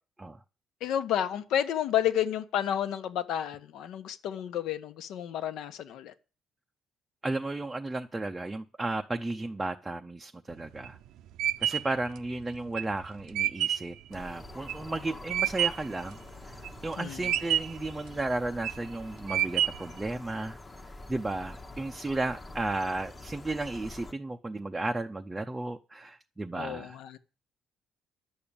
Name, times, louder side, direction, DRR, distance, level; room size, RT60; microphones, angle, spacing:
voice 1, 0.8-6.1 17.0-17.2 26.6-27.2, left 10 dB, 70° left, 1.2 m, -31 dB
voice 2, 7.2-11.0 11.6-20.6 21.1-27.0, right 2 dB, 10° right, 0.6 m, -34 dB
sound 1, 10.5-16.0 16.4-16.9 17.2-17.9 18.4-18.9 19.3-20.0, right 11 dB, 70° right, 0.7 m, -29 dB
sound 2, 14.1-24.1, left 2 dB, 15° left, 1.0 m, -46 dB
11.5 x 6.9 x 8.7 m
cardioid pair, 170°, 0 cm